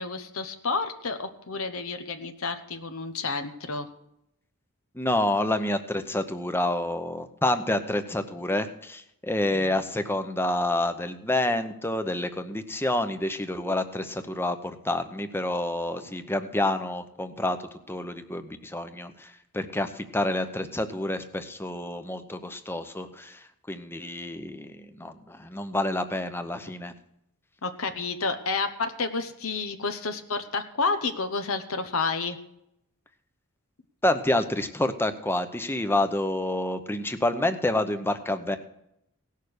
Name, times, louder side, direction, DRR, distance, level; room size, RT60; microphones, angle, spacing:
voice 1, 0.0-3.9 9.5-9.7 27.6-32.4, left 4 dB, 70° left, 8 dB, 0.9 m, -30 dB
voice 2, 4.9-17.6 17.9-26.9 34.0-38.6, left 1 dB, 10° left, 9 dB, 0.8 m, -28 dB
17.5 x 6.6 x 6.6 m, 0.79 s
head